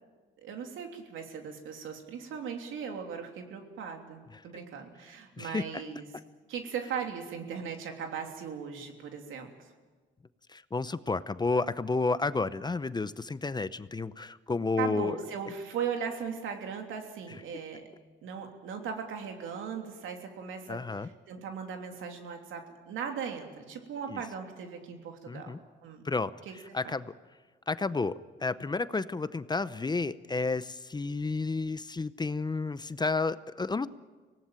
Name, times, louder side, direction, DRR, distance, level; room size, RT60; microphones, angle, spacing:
voice 1, 0.4-6.1 6.5-9.5 14.8-17.8 18.2-26.0 26.4-26.5 26.8-26.9, right 7 dB, 80° right, 4 dB, 3.1 m, -38 dB
voice 2, 5.4-5.8 10.5-15.2 20.7-21.1 24.1-24.2 25.3-25.6 26.0-26.3 26.7-27.1 27.7-33.9, left 3 dB, 20° left, 14 dB, 0.7 m, -31 dB
24.5 x 18.0 x 9.0 m, 1.4 s
cardioid pair, 90°, 20 cm